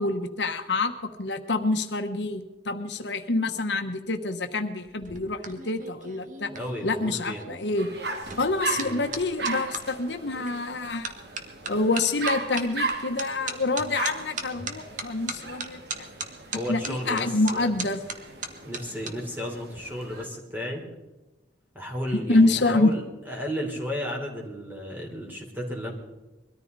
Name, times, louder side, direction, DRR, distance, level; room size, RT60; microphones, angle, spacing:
voice 1, 0.0-6.5 6.8-7.9 8.4-11.1 11.6-16.1 16.7-18.0 22.1-22.9, left 2 dB, 75° left, 6 dB, 1.2 m, -26 dB
sound 1, 4.8-9.8 10.5-10.7 11.0-19.1 19.4-19.8, right 4 dB, 45° right, 1.6 m, -37 dB
voice 2, 6.5-7.5 8.8-9.0 16.5-17.7 18.7-20.8 21.7-25.9, equal, 10° right, -1 dB, 4.0 m, -33 dB
sound 2, 7.8-20.3, right 3 dB, 65° right, 2.0 m, -37 dB
22.5 x 14.0 x 4.1 m, 1.1 s
head